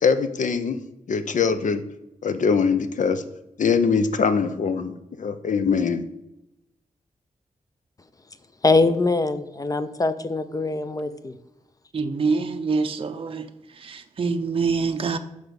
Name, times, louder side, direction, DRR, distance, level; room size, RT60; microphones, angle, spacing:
voice 1, 0.0-0.8 1.1-1.8 2.2-3.2 3.6-6.0, left 5 dB, 65° left, 10 dB, 0.7 m, -22 dB
voice 2, 8.6-11.3, left 3 dB, 25° left, 11 dB, 0.5 m, -22 dB
voice 3, 11.9-13.5 13.8-15.2, right 4 dB, 40° right, 7 dB, 0.5 m, -25 dB
6.2 x 4.9 x 5.1 m, 0.90 s
wide cardioid pair, 115°, 14 cm